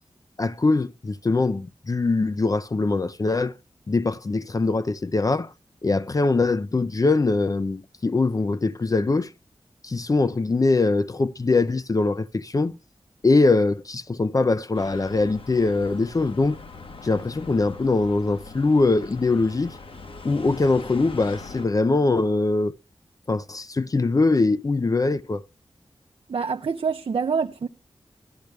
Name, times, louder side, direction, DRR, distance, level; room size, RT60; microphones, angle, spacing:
voice 1, 0.4-3.6 3.9-5.5 5.8-9.3 9.8-12.8 13.2-16.6 17.0-19.8 20.2-22.7 23.3-25.4, left 3 dB, 35° left, 0.5 m, -22 dB
sound 1, 14.7-21.7, left 3 dB, 65° left, 1.2 m, -42 dB
voice 2, 26.3-27.7, right 5 dB, 70° right, 0.7 m, -26 dB
12.0 x 10.5 x 3.2 m
wide cardioid pair, 65°, 10 cm